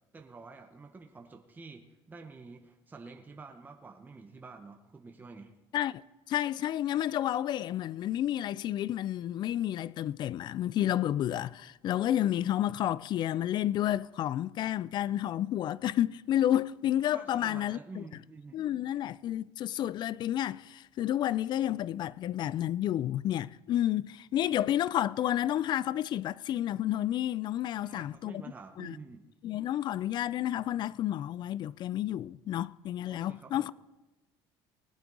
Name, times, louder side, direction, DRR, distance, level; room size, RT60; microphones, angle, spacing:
voice 1, 0.1-5.5 17.1-18.6 27.6-29.3 33.1-33.7, right 4 dB, 20° right, 1.0 m, -49 dB
voice 2, 6.3-18.1 18.5-28.4 28.8-29.0 29.4-33.7, left 12 dB, 50° left, 0.4 m, -30 dB
19.5 x 8.7 x 4.0 m
cardioid pair, 110°, 10 cm